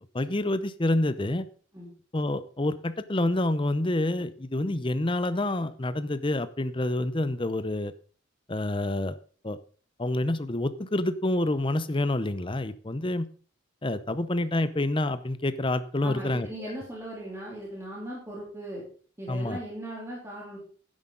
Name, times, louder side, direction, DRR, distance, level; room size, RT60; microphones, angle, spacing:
voice 1, 0.1-1.5 2.1-7.9 8.5-9.2 9.4-9.6 10.0-13.3 13.8-16.7 19.3-19.6, left 1 dB, 25° left, 13 dB, 0.7 m, -28 dB
voice 2, 16.0-18.8 19.2-20.6, right 1 dB, 15° right, -5 dB, 3.4 m, -38 dB
11.0 x 10.0 x 3.9 m, 0.42 s
head